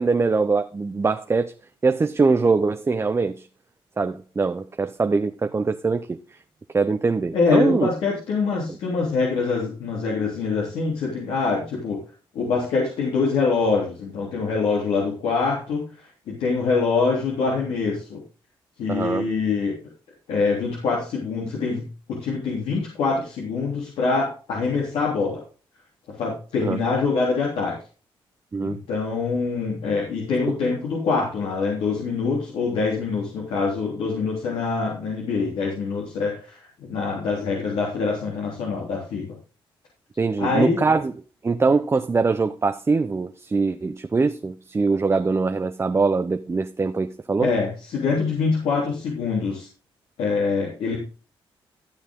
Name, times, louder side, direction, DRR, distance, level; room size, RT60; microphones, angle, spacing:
voice 1, 0.0-1.5 1.8-3.5 4.0-6.2 6.7-7.9 18.9-19.3 26.6-26.8 28.5-28.8 40.2-41.1 41.4-47.5, right 4 dB, 25° right, 0.8 m, -22 dB
voice 2, 7.3-12.0 12.3-15.9 16.3-18.2 18.8-19.8 20.3-21.8 22.1-25.4 26.2-27.8 28.6-39.4 40.4-40.8 47.4-49.7 50.2-51.0, left 4 dB, 85° left, 3.3 m, -24 dB
14.0 x 6.6 x 3.7 m
cardioid pair, 80°, 10 cm